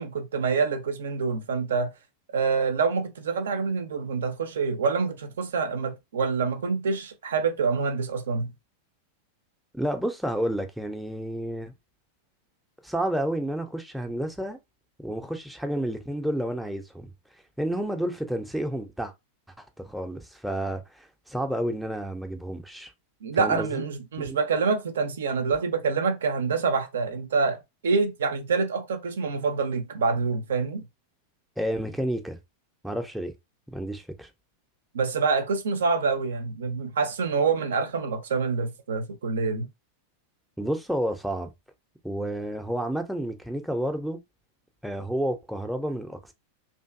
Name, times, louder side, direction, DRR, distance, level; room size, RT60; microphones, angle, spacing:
voice 1, 0.0-1.9 2.3-8.5 23.2-30.8 34.9-39.7, right 4 dB, 65° right, 0.4 m, -26 dB
voice 2, 9.7-11.7 12.8-14.6 15.0-17.1 17.6-19.1 19.6-22.9 23.4-23.8 24.2-24.4 31.6-32.4 32.8-33.3 33.7-34.3 40.6-41.5 42.0-44.2 44.8-46.3, right 1 dB, ahead, 0.5 m, -30 dB
2.5 x 2.5 x 2.4 m
figure-of-eight pair, 90°, 0 cm